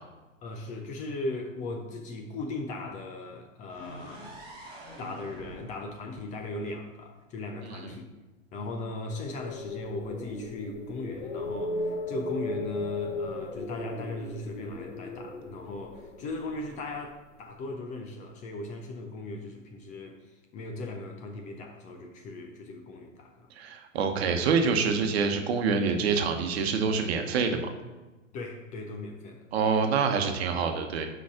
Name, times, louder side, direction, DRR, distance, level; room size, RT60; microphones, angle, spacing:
voice 1, 0.4-4.4 5.0-8.1 8.5-23.5 28.3-29.4, left 2 dB, 20° left, 3 dB, 0.6 m, -38 dB
sound 1, 3.7-7.5, equal, 10° right, 2.1 m, -47 dB
sound 2, 9.1-17.2, left 2 dB, 55° left, 1.5 m, -36 dB
voice 2, 23.6-27.7 29.5-31.1, right 5 dB, 50° right, 5 dB, 1.1 m, -26 dB
6.3 x 5.1 x 5.7 m, 1.2 s
figure-of-eight pair, 110°, 39 cm